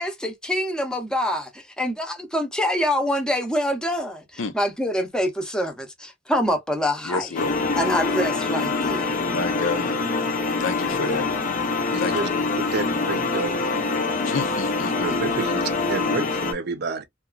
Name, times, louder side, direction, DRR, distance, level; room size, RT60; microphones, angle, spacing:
voice 1, 0.0-7.3 7.7-9.1, equal, 5° left, 0.6 m, -25 dB
voice 2, 7.0-7.7 9.3-10.0 10.4-11.3 12.0-12.6 14.2-15.2, left 4 dB, 85° left, 0.6 m, -30 dB
sound 1, 7.4-16.5, left 3 dB, 40° left, 0.6 m, -25 dB
voice 3, 11.9-12.3 12.6-13.6 15.0-17.0, right 3 dB, 55° right, 0.5 m, -29 dB
2.8 x 2.4 x 2.3 m
head